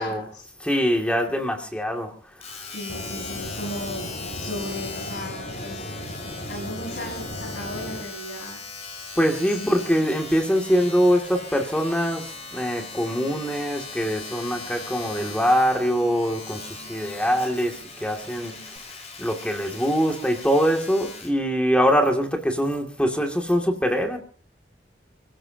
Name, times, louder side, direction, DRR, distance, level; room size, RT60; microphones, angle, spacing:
voice 1, 0.0-0.4 2.7-4.1 4.4-5.8 6.5-8.6 9.6-10.0, left 1 dB, 90° left, 6.6 m, -35 dB
voice 2, 0.6-2.1 2.5-2.6 9.2-18.6 19.2-24.2, equal, 5° left, 2.5 m, -23 dB
Domestic sounds home sounds, 2.4-21.4 22.1-22.2, left 4 dB, 40° left, 4.9 m, -39 dB
sound 1, 2.9-8.0, left 1 dB, 65° left, 3.3 m, -36 dB
sound 2, 10.8-18.8, right 3 dB, 30° right, 6.2 m, -50 dB
29.0 x 16.5 x 2.9 m
head